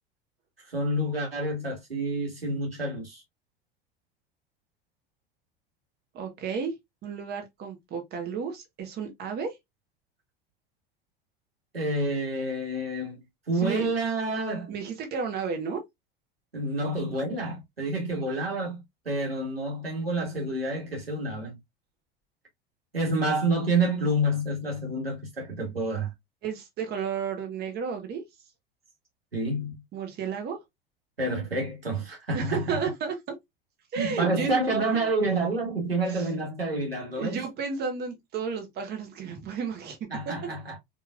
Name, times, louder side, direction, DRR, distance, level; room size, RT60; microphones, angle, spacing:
voice 1, 0.7-3.2 11.7-13.2 13.5-14.7 16.5-18.8 19.0-21.6 22.9-26.1 29.3-29.7 31.2-32.8 34.0-37.4 40.1-40.8, right 2 dB, 85° right, 1.7 m, -28 dB
voice 2, 6.1-6.7 7.0-9.6 13.5-13.9 14.7-15.8 26.4-28.2 29.9-30.6 32.3-33.3 33.9-35.1 36.1-36.3 37.1-40.0 40.2-40.3, right 6 dB, 35° right, 1.3 m, -32 dB
4.5 x 3.0 x 2.4 m
figure-of-eight pair, 75°, 29 cm